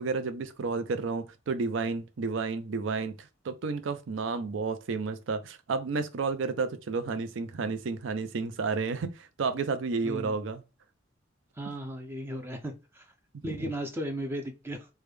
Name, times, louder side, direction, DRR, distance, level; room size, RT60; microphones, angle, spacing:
voice 1, 0.0-3.1 3.4-10.6 13.4-13.7, right 4 dB, 75° right, 0.5 m, -31 dB
voice 2, 10.0-10.4 11.6-13.1 13.4-14.9, equal, 10° right, 0.4 m, -36 dB
3.4 x 2.2 x 3.1 m
head